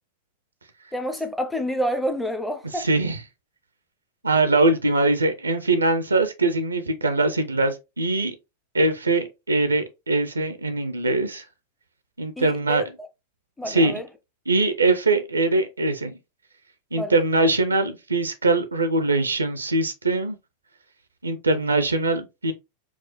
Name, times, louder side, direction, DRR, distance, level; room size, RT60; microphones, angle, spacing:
voice 1, 0.9-2.9 12.4-12.8 13.6-14.1 16.9-17.2, equal, 5° left, 0.6 m, -28 dB
voice 2, 2.7-3.2 4.2-8.3 8.7-11.5 12.2-12.8 13.6-14.0 14.5-16.2 16.9-20.4 21.2-22.5, right 2 dB, 80° right, 0.4 m, -22 dB
4.7 x 2.0 x 2.9 m
figure-of-eight pair, 90°, 0 cm